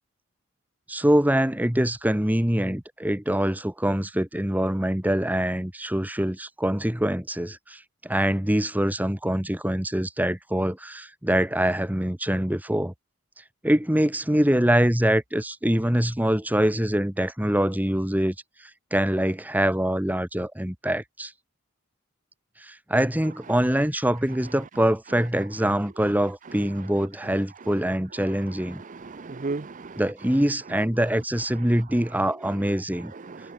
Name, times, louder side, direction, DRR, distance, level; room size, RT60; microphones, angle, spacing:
voice 1, 0.9-12.9 13.6-18.3 18.9-21.3 22.6-28.8 30.0-33.1, right 1 dB, 10° right, 1.4 m, -24 dB
voice 2, 28.6-30.0 31.6-31.7 32.4-32.6 33.0-33.5, right 3 dB, 40° right, 0.6 m, -36 dB
head